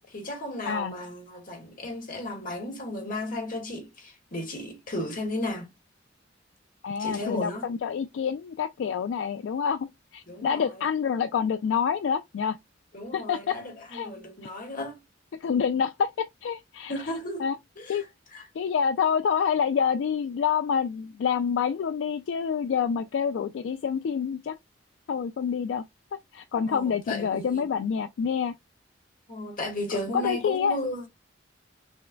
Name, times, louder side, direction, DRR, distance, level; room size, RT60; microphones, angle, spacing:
voice 1, 0.1-5.7 7.0-7.7 10.3-10.7 12.9-15.0 16.9-17.5 17.8-18.1 18.3-18.4 26.7-27.7 29.3-31.0, left 1 dB, 50° left, 1.3 m, -34 dB
voice 2, 6.8-12.6 13.1-13.6 13.9-14.1 15.4-16.9 17.4-17.6 17.9-18.0 18.6-24.6 25.1-25.8 26.3-28.5 30.1-30.8, left 7 dB, 70° left, 0.3 m, -27 dB
6.3 x 2.1 x 2.2 m
head